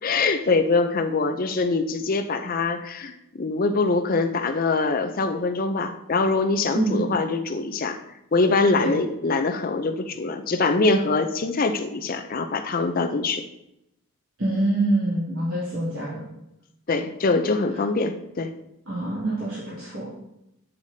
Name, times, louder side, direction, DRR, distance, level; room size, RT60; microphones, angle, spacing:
voice 1, 0.0-8.0 8.3-13.4 16.9-18.5, left 3 dB, 40° left, 6 dB, 0.5 m, -23 dB
voice 2, 6.7-7.1 8.8-9.0 14.4-16.2 18.9-20.1, right 1 dB, 65° right, -10 dB, 2.6 m, -25 dB
8.2 x 8.2 x 2.7 m, 0.85 s
head